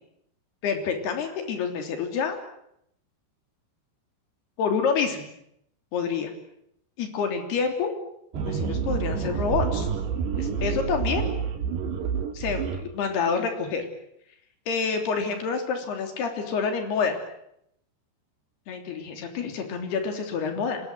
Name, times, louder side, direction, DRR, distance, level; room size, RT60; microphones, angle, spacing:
voice 1, 0.6-2.4 4.6-5.3 5.9-6.3 7.0-7.9 8.3-9.9 10.4-11.3 12.3-13.9 14.7-17.2 18.7-20.8, left 5 dB, 65° left, 5 dB, 5.2 m, -27 dB
sound 1, 8.3-12.8, right 6 dB, 70° right, 4.5 m, -28 dB
26.0 x 20.5 x 9.1 m, 0.76 s
omnidirectional pair, 5.1 m